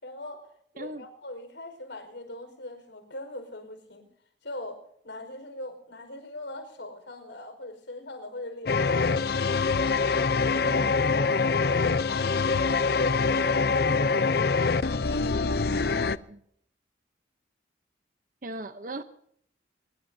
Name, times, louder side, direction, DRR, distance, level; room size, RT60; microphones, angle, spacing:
voice 1, 0.0-4.1 4.4-9.2 10.1-14.6, left 1 dB, 80° left, 7 dB, 4.9 m, -40 dB
sound 1, 8.7-16.2, left 4 dB, 55° left, 0.6 m, -24 dB
voice 2, 16.0-16.4 18.4-19.0, right 2 dB, 45° right, 10 dB, 0.8 m, -39 dB
25.0 x 21.5 x 2.7 m, 0.66 s
head